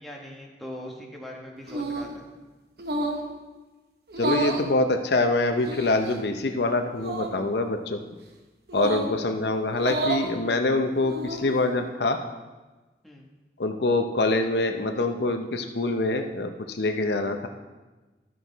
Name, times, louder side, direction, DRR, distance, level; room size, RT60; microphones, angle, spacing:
voice 1, 0.0-2.3 8.9-9.1 13.0-13.3, left 1 dB, ahead, -2 dB, 1.2 m, -41 dB
sound 1, 1.7-2.2 2.8-3.3 4.1-4.7 5.6-6.1 7.0-7.3 8.7-9.1 9.7-10.3 11.0-11.5, right 2 dB, 65° right, 1.0 m, -30 dB
voice 2, 4.2-8.0 8.7-12.2 13.6-17.5, left 2 dB, 75° left, 6 dB, 0.6 m, -25 dB
12.0 x 6.1 x 4.0 m, 1.2 s
head